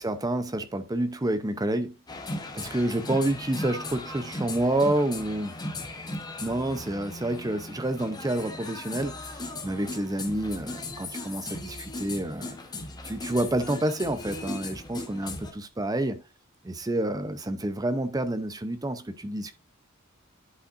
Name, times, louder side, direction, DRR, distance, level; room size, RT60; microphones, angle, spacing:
voice 1, 0.0-1.9 2.5-5.6 6.4-12.6 13.0-16.2 16.6-19.5, right 1 dB, 20° right, 0.6 m, -29 dB
sound 1, 2.1-15.5, left 2 dB, 20° left, 0.9 m, -37 dB
11.0 x 5.4 x 2.5 m
head